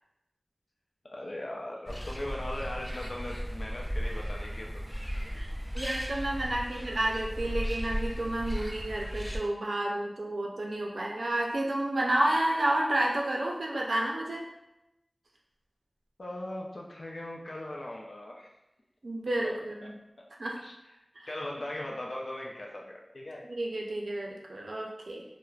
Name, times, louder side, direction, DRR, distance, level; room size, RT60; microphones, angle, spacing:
voice 1, 1.1-4.8 16.2-18.5 19.4-19.5 19.8-19.9 20.6-20.9 21.3-23.5, left 1 dB, 70° left, -1 dB, 0.4 m, -39 dB
sound 1, 1.9-9.4, equal, ahead, 0.3 m, -36 dB
voice 2, 5.7-14.5 19.0-19.9 20.4-20.6 21.2-21.3 23.5-25.2, right 1 dB, 80° right, -1 dB, 0.4 m, -30 dB
3.1 x 2.0 x 2.3 m, 0.91 s
wide cardioid pair, 50°, 0 cm